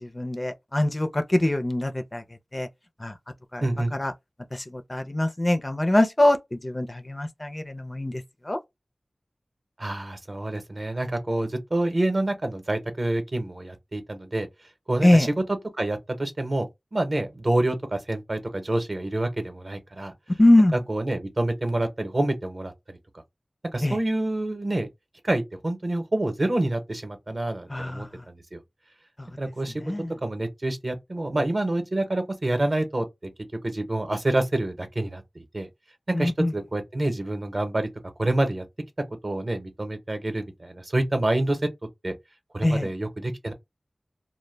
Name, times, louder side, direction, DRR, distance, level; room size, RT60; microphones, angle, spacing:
voice 1, 0.0-2.2 2.5-2.7 3.0-3.1 3.5-4.1 4.5-8.6 15.0-15.3 20.4-20.8 23.8-24.0 27.7-28.1 29.2-29.3 29.8-30.1 36.1-36.5 42.6-42.9, left 1 dB, 30° left, 0.4 m, -23 dB
voice 2, 3.6-3.9 9.8-14.5 14.9-15.3 15.7-16.7 16.9-20.1 20.7-23.0 23.7-24.9 25.2-28.6 29.4-29.8 30.2-33.3 33.6-35.7 36.2-37.9 38.2-38.6 39.2-41.6 42.0-42.1 42.5-43.5, right 1 dB, 50° right, 0.7 m, -27 dB
2.1 x 2.1 x 3.2 m
wide cardioid pair, 70°, 0 cm